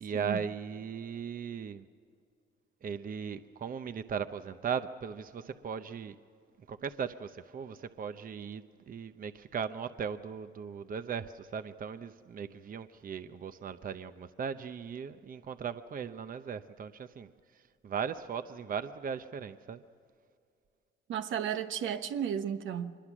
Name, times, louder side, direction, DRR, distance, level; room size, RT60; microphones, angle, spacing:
voice 1, 0.0-1.9 2.8-6.2 6.7-17.3 17.8-19.8, right 7 dB, 45° right, 0.8 m, -38 dB
voice 2, 21.1-23.0, right 9 dB, 75° right, 1.1 m, -33 dB
24.5 x 22.0 x 6.2 m
cardioid pair, 90°, 20 cm